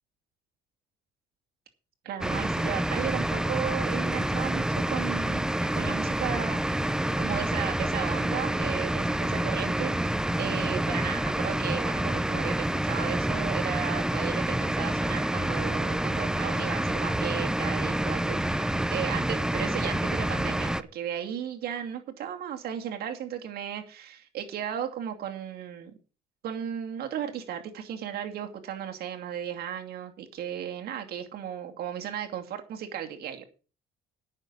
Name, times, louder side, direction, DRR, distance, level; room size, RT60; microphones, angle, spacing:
voice 1, 2.0-26.0 26.4-33.4, right 9 dB, 65° right, 4 dB, 2.6 m, -35 dB
sound 1, 2.2-20.8, right 1 dB, 5° right, 0.6 m, -28 dB
9.8 x 6.7 x 8.3 m, 0.37 s
cardioid pair, 110°, 17 cm